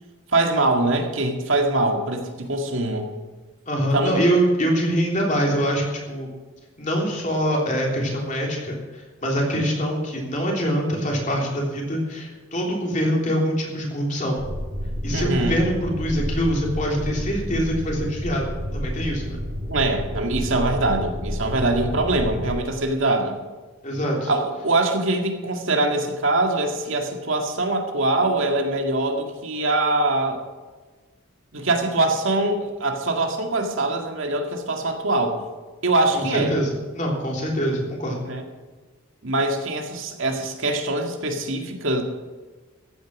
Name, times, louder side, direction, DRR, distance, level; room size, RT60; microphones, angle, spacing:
voice 1, 0.3-3.1 3.9-4.2 15.1-15.6 19.7-23.4 24.3-30.4 31.5-35.4 35.8-36.6 38.3-38.4 39.2-42.0, right 2 dB, 70° right, 3 dB, 2.0 m, -23 dB
voice 2, 3.7-6.3 6.8-14.4 15.0-18.5 18.7-19.4 23.8-24.3 36.1-38.2, equal, 35° left, -1 dB, 3.3 m, -24 dB
sound 1, 14.4-22.6, equal, 35° right, 2.4 m, -30 dB
15.0 x 9.6 x 6.2 m, 1.3 s
head